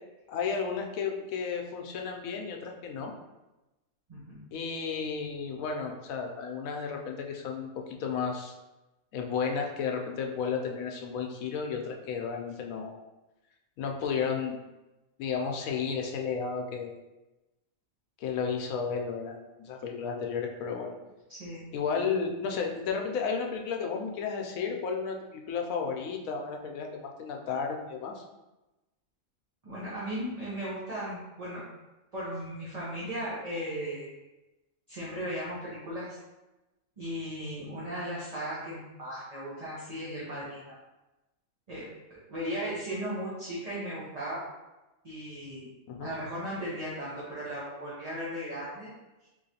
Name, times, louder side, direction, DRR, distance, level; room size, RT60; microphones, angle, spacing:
voice 1, 0.3-3.1 4.5-8.5 9.1-12.9 13.8-14.6 15.2-16.9 18.2-20.9 21.7-28.2 45.9-46.1, left 5 dB, 85° left, 2 dB, 1.0 m, -33 dB
voice 2, 4.1-4.4 21.3-21.7 29.6-31.6 32.1-34.1 34.9-36.2 37.0-40.7 41.7-44.4 45.0-45.7 46.0-48.9 49.2-49.3, equal, 35° right, -9 dB, 0.9 m, -36 dB
3.8 x 3.0 x 2.8 m, 1.0 s
omnidirectional pair, 1.4 m